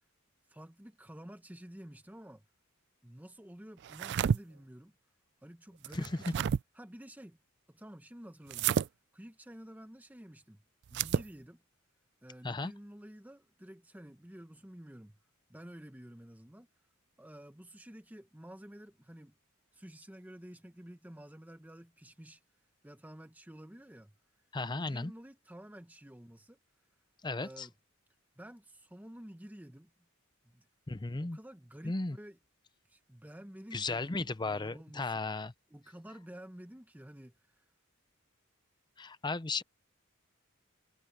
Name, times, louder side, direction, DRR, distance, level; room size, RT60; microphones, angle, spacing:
voice 1, 0.5-2.4 3.0-4.9 5.4-6.5 6.7-7.4 7.7-8.8 9.1-10.6 10.9-11.6 12.2-15.2 15.5-16.7 17.2-19.4 19.7-22.4 22.8-24.1 24.7-26.6 27.4-27.7 28.4-29.9 30.4-30.7 31.2-32.4 32.8-35.2 35.7-37.6, equal, 10° right, 0.8 m, -51 dB
sound 1, 3.8-4.4 5.8-6.6 8.5-8.9 10.9-11.3, right 8 dB, 55° right, 0.3 m, -30 dB
voice 2, 24.5-25.1 27.2-27.7 30.9-31.4 31.8-32.2 33.7-35.5 39.0-39.6, left 3 dB, 20° left, 0.6 m, -35 dB
head